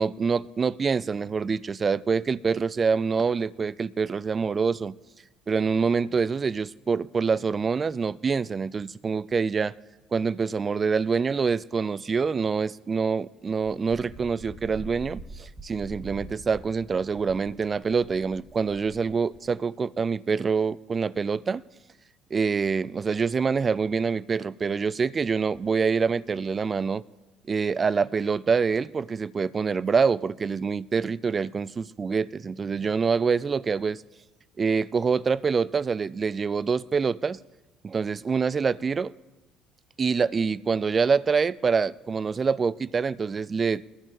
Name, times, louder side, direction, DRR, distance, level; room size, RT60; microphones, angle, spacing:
voice 1, 0.0-4.9 5.5-9.7 10.1-21.6 22.3-27.0 27.5-34.0 34.6-37.4 37.8-39.1 40.0-43.9, right 5 dB, 30° right, 20 dB, 0.3 m, -26 dB
Wind, 13.6-19.6, right 1 dB, 10° right, 1.0 m, -45 dB
22.5 x 14.0 x 2.4 m, 1.1 s
figure-of-eight pair, 55°, 0 cm